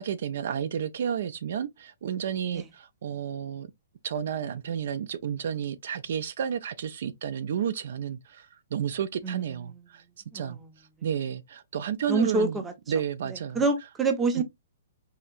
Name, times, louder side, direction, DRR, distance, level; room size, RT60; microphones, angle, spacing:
voice 1, 0.0-3.7 4.0-10.0 10.3-10.6 11.0-12.6 12.9-13.6 14.4-14.5, right 8 dB, 60° right, 0.4 m, -31 dB
voice 2, 9.2-9.8 10.3-10.7 12.1-12.7 13.3-14.4, right 3 dB, 10° right, 0.6 m, -27 dB
4.3 x 2.8 x 2.4 m
hypercardioid pair, 160°, 0 cm